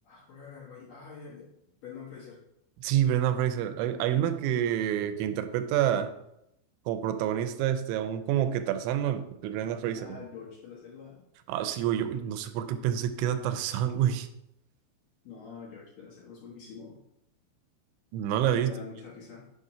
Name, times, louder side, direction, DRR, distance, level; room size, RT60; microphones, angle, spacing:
voice 1, 0.0-1.5 1.8-2.4 9.9-11.2 15.2-17.0 18.5-19.5, left 5 dB, 60° left, -6 dB, 2.4 m, -45 dB
voice 2, 2.8-6.1 6.9-10.2 11.5-14.3 18.1-18.7, right 10 dB, 85° right, 9 dB, 2.9 m, -28 dB
7.3 x 3.8 x 5.5 m, 0.80 s
omnidirectional pair, 5.3 m